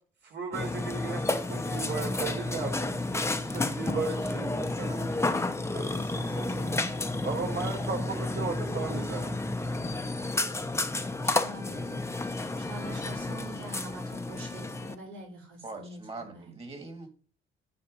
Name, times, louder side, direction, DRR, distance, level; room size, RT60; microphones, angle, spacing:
voice 1, 0.2-2.9 3.4-5.3 5.7-6.7 7.2-9.4, right 4 dB, 60° right, 1 dB, 4.1 m, -36 dB
Burping eructation, 0.5-15.0, left 2 dB, 15° left, 0.9 m, -31 dB
voice 2, 11.2-16.5, right 1 dB, 85° right, -2 dB, 3.4 m, -45 dB
voice 3, 15.6-17.1, right 3 dB, 30° right, 6 dB, 2.9 m, -42 dB
9.8 x 4.2 x 5.5 m, 0.40 s
cardioid pair, 90°, 20 cm